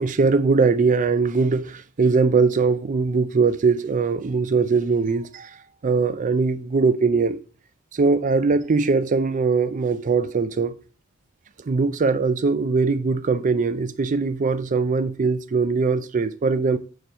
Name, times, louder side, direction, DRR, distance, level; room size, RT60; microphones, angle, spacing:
voice 1, 0.0-7.4 7.9-10.7 11.7-16.8, right 4 dB, 35° right, 0.4 m, -21 dB
6.7 x 4.3 x 4.5 m
head